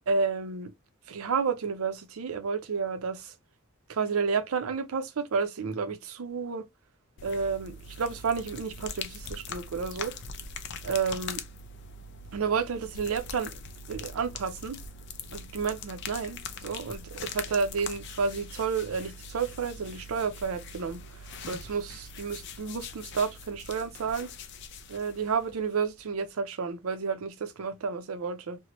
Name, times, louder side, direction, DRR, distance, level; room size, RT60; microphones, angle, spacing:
voice 1, 0.1-0.7 1.1-3.3 3.9-6.6 7.2-10.1 10.8-11.4 12.3-13.5 13.9-14.8 15.3-21.0 21.5-24.3 24.9-28.6, right 5 dB, 70° right, 0.5 m, -31 dB
sound 1, 7.2-26.1, left 4 dB, 55° left, 0.4 m, -42 dB
2.8 x 2.1 x 2.9 m
head